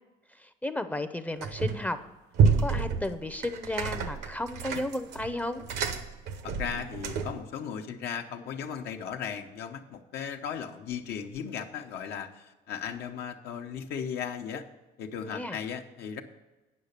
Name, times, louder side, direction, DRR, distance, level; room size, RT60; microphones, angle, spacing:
voice 1, 0.3-2.0 2.6-5.6 15.3-15.6, left 1 dB, 10° left, 9 dB, 0.5 m, -33 dB
sound 1, 1.4-1.9 2.3-7.5, right 5 dB, 80° right, 0.9 m, -29 dB
voice 2, 6.4-14.6 15.0-16.2, left 7 dB, 75° left, 4 dB, 0.9 m, -36 dB
9.5 x 5.7 x 6.7 m, 1.1 s
cardioid pair, 110°, 17 cm